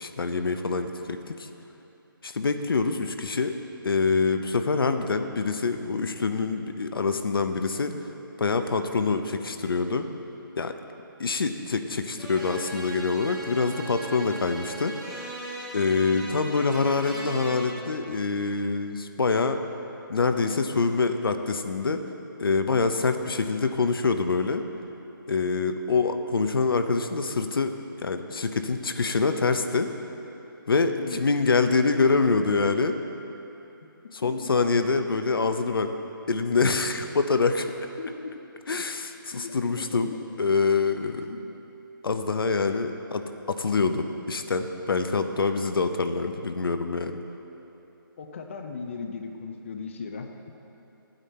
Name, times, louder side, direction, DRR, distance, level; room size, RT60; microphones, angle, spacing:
voice 1, 0.0-1.5 2.2-3.6 3.8-8.0 8.4-10.1 10.6-10.7 11.2-14.9 15.7-19.6 20.1-22.0 22.4-24.6 25.3-27.8 28.0-29.9 30.7-33.0 34.1-35.9 36.3-37.6 38.7-40.1 40.4-41.4 42.0-47.2, left 4 dB, 75° left, 7 dB, 0.8 m, -25 dB
sound 1, 12.2-17.7, right 1 dB, 5° right, 1.3 m, -38 dB
voice 2, 38.0-38.3 39.3-39.9 41.3-41.4 48.2-50.5, left 5 dB, 35° left, 4 dB, 0.6 m, -37 dB
13.0 x 9.0 x 4.3 m, 2.9 s
hypercardioid pair, 165°, 12 cm